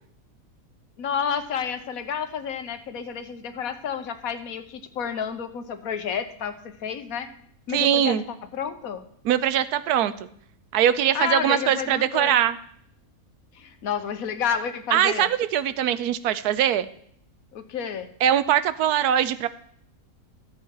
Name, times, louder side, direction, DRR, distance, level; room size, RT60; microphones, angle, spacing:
voice 1, 1.0-7.3 7.7-9.0 11.1-12.4 13.5-15.3 17.5-18.1, left 7 dB, 70° left, 9 dB, 1.3 m, -30 dB
voice 2, 7.7-8.2 9.2-10.1 10.7-12.6 14.9-16.9 18.2-19.5, right 10 dB, 90° right, 14 dB, 1.2 m, -22 dB
13.0 x 8.2 x 4.6 m, 0.66 s
omnidirectional pair, 1.6 m